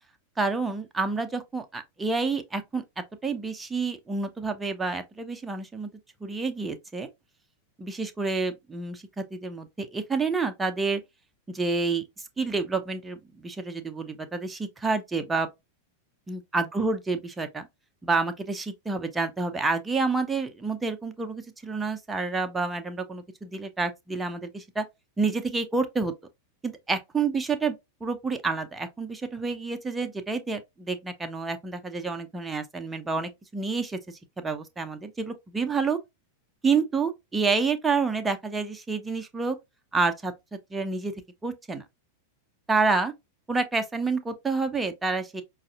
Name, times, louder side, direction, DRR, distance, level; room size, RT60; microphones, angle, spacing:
voice 1, 0.4-2.8 3.2-5.9 6.2-7.1 7.8-11.0 11.5-12.0 12.4-15.5 16.3-17.7 18.0-24.9 25.2-26.1 26.6-27.8 28.0-36.0 36.6-39.6 39.9-40.3 40.7-41.1 41.4-41.8 42.7-43.1 43.5-45.4, right 4 dB, 10° right, 0.6 m, -28 dB
5.5 x 2.5 x 2.4 m
figure-of-eight pair, 90°, 0 cm